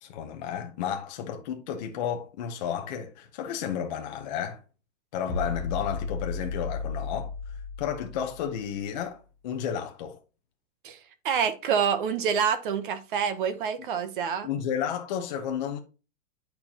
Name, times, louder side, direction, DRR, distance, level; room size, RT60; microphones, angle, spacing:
voice 1, 0.0-4.6 5.1-7.3 7.8-9.2 9.4-10.2 14.4-15.8, left 8 dB, 35° left, 0.7 m, -32 dB
sound 1, 5.3-8.7, left 4 dB, 10° right, 0.5 m, -34 dB
voice 2, 11.2-14.5, right 7 dB, 40° right, 0.7 m, -27 dB
8.5 x 4.5 x 2.8 m
supercardioid pair, 170°, 39 cm